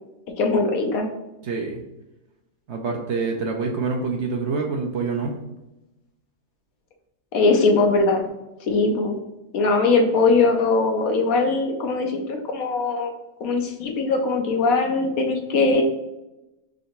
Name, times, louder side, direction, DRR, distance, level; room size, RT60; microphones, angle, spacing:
voice 1, 0.4-1.1 7.3-8.2 8.7-9.2 9.5-13.1 13.4-15.8, left 3 dB, 75° left, 3 dB, 1.2 m, -20 dB
voice 2, 1.4-1.8 2.7-5.4, right 4 dB, 60° right, 2 dB, 0.9 m, -26 dB
3.8 x 3.4 x 4.1 m, 0.96 s
omnidirectional pair, 1.5 m